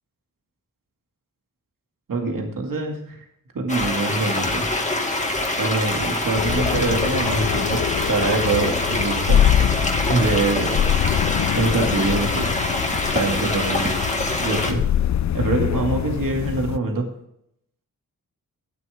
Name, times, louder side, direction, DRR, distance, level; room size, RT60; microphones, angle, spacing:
voice 1, 2.1-3.0 3.5-4.7 5.6-7.8 8.1-9.4 10.1-10.9 11.5-12.5 13.1-14.1 14.4-14.9 15.3-17.1, right 3 dB, 70° right, 2 dB, 2.3 m, -24 dB
sound 1, 3.7-14.7, left 2 dB, 20° left, 2.0 m, -25 dB
sound 2, 6.3-16.8, left 10 dB, 55° left, 0.5 m, -24 dB
sound 3, 7.7-14.0, right 1 dB, 35° right, 3.0 m, -37 dB
12.0 x 10.5 x 3.6 m, 0.74 s
wide cardioid pair, 85°, 34 cm